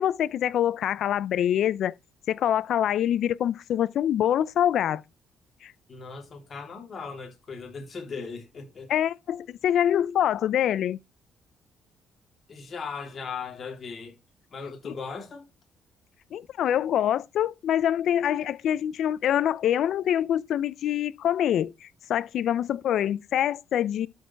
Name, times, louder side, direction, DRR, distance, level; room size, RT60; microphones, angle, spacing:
voice 1, 0.0-1.9 2.3-5.0 5.6-5.7 8.9-11.0 16.3-24.1, left 10 dB, 70° left, 0.5 m, -25 dB
voice 2, 5.9-8.9 12.5-14.2 14.5-15.4, left 5 dB, 45° left, 3.3 m, -38 dB
12.0 x 4.6 x 4.5 m
cardioid pair, 90°, 0 cm